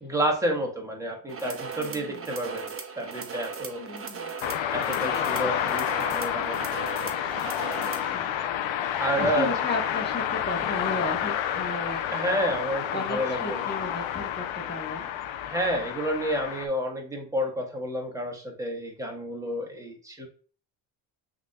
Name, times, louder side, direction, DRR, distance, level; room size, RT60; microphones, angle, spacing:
voice 1, 0.0-3.8 4.7-6.7 9.0-9.5 12.1-13.6 15.5-20.3, equal, 5° right, 1 dB, 1.4 m, -30 dB
sound 1, 1.3-8.1, right 5 dB, 30° right, 0.7 m, -38 dB
voice 2, 1.8-2.3 3.8-4.3 7.8-8.3 8.9-12.4 12.9-15.1, left 2 dB, 20° left, 1 dB, 1.3 m, -35 dB
sound 2, 4.4-16.7, left 10 dB, 65° left, 0.7 m, -29 dB
5.8 x 3.0 x 2.3 m, 0.41 s
cardioid pair, 85°, 49 cm